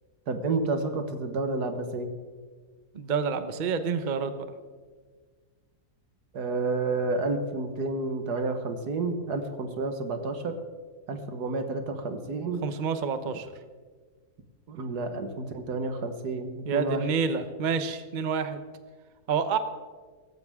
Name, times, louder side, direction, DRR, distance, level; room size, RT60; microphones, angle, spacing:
voice 1, 0.3-2.1 6.3-10.5 11.1-12.6 14.7-17.1, right 3 dB, 80° right, 7 dB, 1.9 m, -30 dB
voice 2, 2.9-4.5 12.6-13.5 16.6-18.6 19.3-19.6, right 6 dB, 40° right, 10 dB, 0.8 m, -28 dB
17.5 x 15.0 x 3.6 m, 1.5 s
omnidirectional pair, 1.7 m